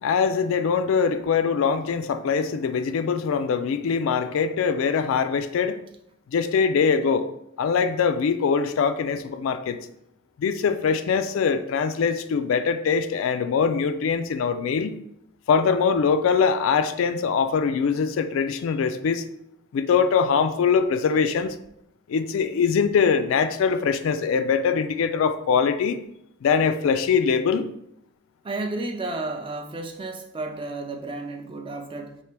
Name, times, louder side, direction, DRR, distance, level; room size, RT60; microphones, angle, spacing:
voice 1, 0.0-5.8 6.3-7.3 7.6-9.9 10.4-15.0 15.5-19.2 19.7-21.5 22.1-26.0 26.4-27.7, left 6 dB, 65° left, 10 dB, 0.3 m, -22 dB
voice 2, 28.4-32.2, right 2 dB, 25° right, 5 dB, 0.3 m, -32 dB
4.5 x 2.9 x 3.3 m, 0.77 s
head